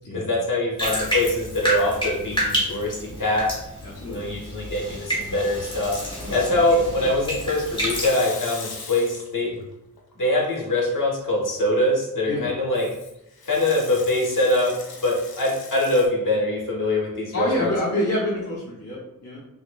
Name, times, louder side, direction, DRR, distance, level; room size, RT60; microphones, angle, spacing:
voice 1, 0.1-3.4 4.1-6.0 6.3-9.5 10.2-12.9 13.4-14.7 15.0-17.7, left 1 dB, 60° left, -4 dB, 1.2 m, -23 dB
Bathtub (filling or washing), 0.8-8.1, equal, 15° left, 1.1 m, -29 dB
voice 2, 3.8-4.3 6.2-6.9 12.3-12.4 17.3-19.4, left 1 dB, 45° left, -6 dB, 0.8 m, -28 dB
Water tap faucet / Sink (filling or washing) / Liquid, 7.9-9.6 10.0-10.7 12.8-16.1, left 4 dB, 85° left, 0.7 m, -40 dB
5.6 x 2.0 x 2.2 m, 0.86 s
wide cardioid pair, 90°, 36 cm